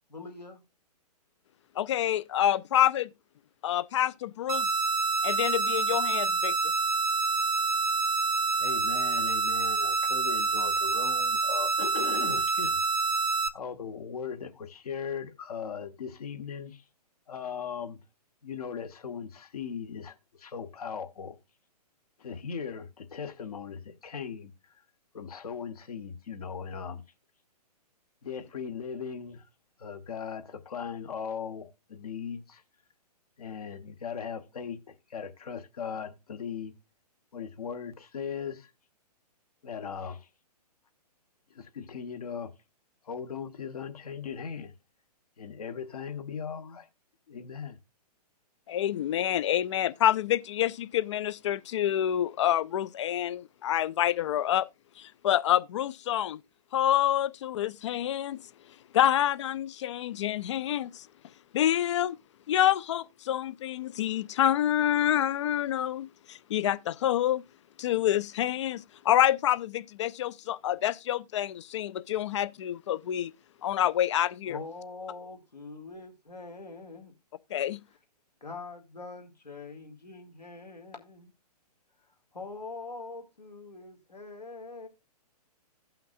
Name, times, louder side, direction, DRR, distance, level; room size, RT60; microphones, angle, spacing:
voice 1, 0.1-0.6 74.5-77.1 78.4-81.3 82.3-84.9, left 3 dB, 85° left, 2.1 m, -43 dB
voice 2, 1.8-3.1 3.6-4.7 5.2-6.5 48.7-54.7 55.0-56.4 56.7-58.4 58.9-61.1 61.5-62.2 62.5-67.4 67.8-73.3 73.6-74.6 77.5-77.8, left 11 dB, 45° left, 0.4 m, -27 dB
sound 1, 4.5-13.5, right 3 dB, 65° right, 0.8 m, -27 dB
voice 3, 8.6-12.8 13.5-16.8 17.3-18.0 18.4-21.4 22.2-24.5 25.1-27.0 28.2-29.4 29.8-32.6 33.4-36.7 37.3-38.7 39.6-40.3 41.5-42.5 43.0-44.7 45.4-46.9 47.3-47.8, left 6 dB, 65° left, 1.1 m, -38 dB
16.0 x 5.8 x 2.4 m
figure-of-eight pair, 125°, 21 cm